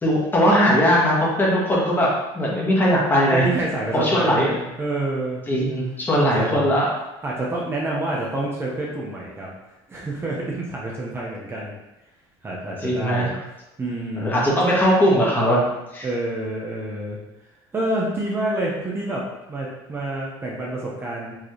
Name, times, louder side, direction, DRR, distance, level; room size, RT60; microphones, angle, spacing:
voice 1, 0.0-2.1 2.3-3.4 3.9-4.5 5.5-6.9 12.8-13.3 14.2-15.6 15.9-16.1, equal, 20° left, -5 dB, 1.4 m, -19 dB
voice 2, 3.3-5.4 6.2-6.7 7.2-9.5 9.9-11.7 12.4-13.3 13.8-14.5 16.0-17.2 17.7-21.4, right 1 dB, 20° right, -4 dB, 0.8 m, -28 dB
4.8 x 3.1 x 3.1 m, 0.96 s
supercardioid pair, 110°, 11 cm